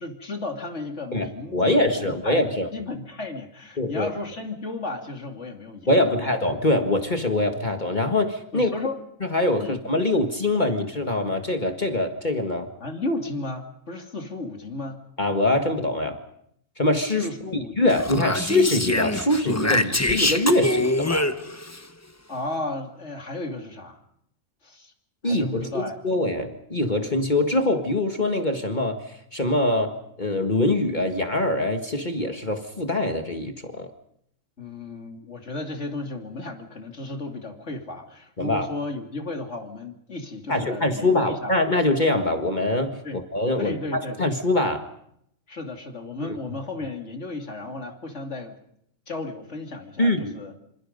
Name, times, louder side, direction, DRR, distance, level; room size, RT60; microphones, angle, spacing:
voice 1, 0.0-2.4 2.7-6.4 8.5-9.0 9.6-9.8 12.8-15.0 17.2-18.0 22.3-24.0 24.6-24.9 25.2-26.0 34.6-41.5 43.0-43.2 43.6-44.2 45.5-48.6 49.1-50.5, left 2 dB, 60° left, 4 dB, 3.1 m, -34 dB
voice 2, 1.1-2.7 3.8-4.1 5.9-8.7 9.2-12.7 15.2-16.2 16.8-17.3 17.8-21.3 25.2-33.9 38.4-38.7 40.5-43.0 43.3-43.7 44.2-44.9 50.0-50.4, left 2 dB, 35° left, 6 dB, 1.9 m, -23 dB
Speech, 17.9-21.8, left 2 dB, 15° left, 0.9 m, -25 dB
27.0 x 26.5 x 5.4 m, 0.72 s
omnidirectional pair, 1.4 m